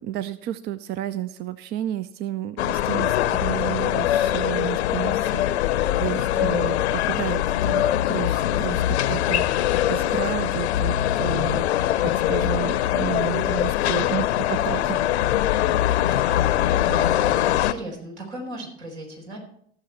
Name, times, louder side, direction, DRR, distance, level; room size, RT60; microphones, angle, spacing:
voice 1, 0.0-5.4 6.0-15.0, right 12 dB, 30° right, 16 dB, 0.4 m, -32 dB
sound 1, 2.6-17.7, left 12 dB, 65° left, 0.7 m, -22 dB
voice 2, 6.3-6.7 16.7-19.4, right 1 dB, 65° right, 2 dB, 4.3 m, -36 dB
16.0 x 7.0 x 4.3 m, 0.64 s
figure-of-eight pair, 85°, 35 cm